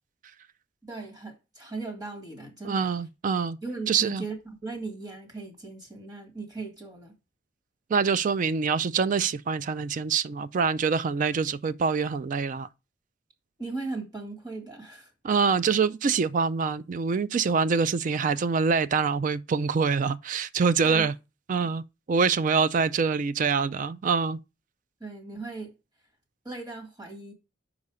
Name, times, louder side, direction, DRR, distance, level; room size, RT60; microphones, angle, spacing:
voice 1, 0.8-2.9 3.6-7.2 13.6-15.1 20.8-21.1 25.0-25.7 26.4-27.3, right 3 dB, 20° right, 2.0 m, -38 dB
voice 2, 2.6-3.6 3.9-4.2 7.9-12.7 15.2-21.1 21.5-24.4, right 5 dB, 45° right, 0.3 m, -25 dB
5.5 x 4.9 x 4.8 m
head